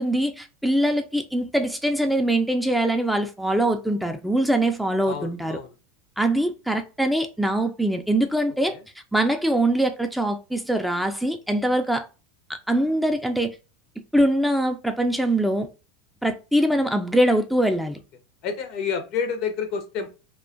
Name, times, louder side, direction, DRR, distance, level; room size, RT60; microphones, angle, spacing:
voice 1, 0.0-5.6 6.2-8.8 9.1-12.1 12.5-13.6 14.1-15.7 16.2-18.0, right 1 dB, ahead, 0.3 m, -23 dB
voice 2, 5.0-5.7 18.4-20.1, left 6 dB, 55° left, 0.6 m, -29 dB
2.4 x 2.2 x 2.4 m
hypercardioid pair, 95°, 0 cm